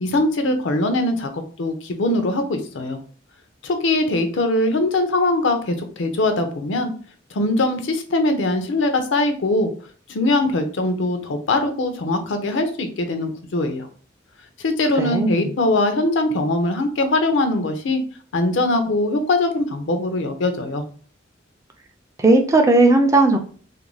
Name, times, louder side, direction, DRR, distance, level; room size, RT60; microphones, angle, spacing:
voice 1, 0.0-3.0 3.6-6.9 7.3-9.7 10.1-13.9 14.6-18.0 18.3-20.8, left 2 dB, 70° left, 7 dB, 0.5 m, -21 dB
voice 2, 15.0-15.5 22.2-23.4, right 2 dB, 15° right, 4 dB, 0.3 m, -16 dB
2.5 x 2.2 x 3.1 m, 0.42 s
head